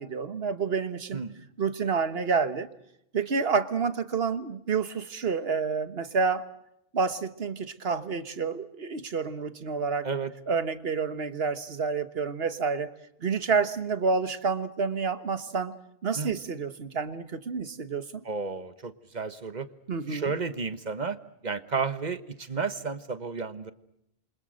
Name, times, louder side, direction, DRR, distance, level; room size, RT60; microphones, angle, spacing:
voice 1, 0.0-1.2 1.6-2.7 3.1-6.4 6.9-10.1 10.5-12.9 13.2-15.7 16.0-18.2 19.9-20.3, right 5 dB, 70° right, 11 dB, 1.6 m, -29 dB
voice 2, 1.1-1.4 10.0-10.3 16.1-16.4 18.2-19.7 20.1-21.2 21.4-23.7, right 5 dB, 45° right, 12 dB, 1.5 m, -32 dB
28.0 x 25.5 x 6.5 m, 0.78 s
omnidirectional pair, 1.1 m